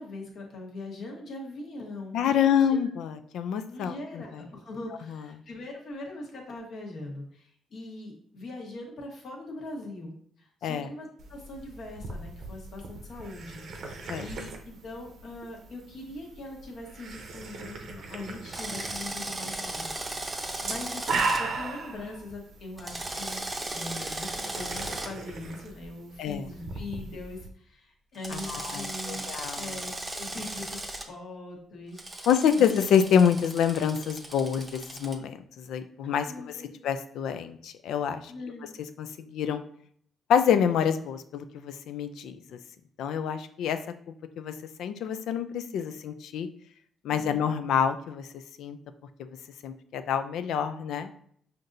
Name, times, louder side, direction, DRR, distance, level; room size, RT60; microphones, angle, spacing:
voice 1, 0.0-2.9 3.7-23.4 23.7-29.2 29.5-32.3 32.6-32.7 36.0-36.8 38.3-38.7 47.1-47.5, left 2 dB, 65° left, -1 dB, 1.2 m, -41 dB
voice 2, 2.1-4.4 5.1-5.3 10.6-10.9 14.1-14.3 26.2-26.5 28.3-29.6 32.3-36.5 36.8-38.3 39.0-39.6 40.3-42.6 43.0-43.8 44.4-44.5 44.8-46.5 47.0-48.3 48.6-48.8 49.6-51.3, left 8 dB, 80° left, 10 dB, 0.3 m, -27 dB
sound 1, 11.2-27.5, right 3 dB, 65° right, 0.7 m, -38 dB
Drill, 18.5-21.4 22.8-25.1 28.2-31.0 32.0-35.1, right 2 dB, 20° right, 0.6 m, -36 dB
5.8 x 2.6 x 2.6 m, 0.63 s
cardioid pair, 90°, 0 cm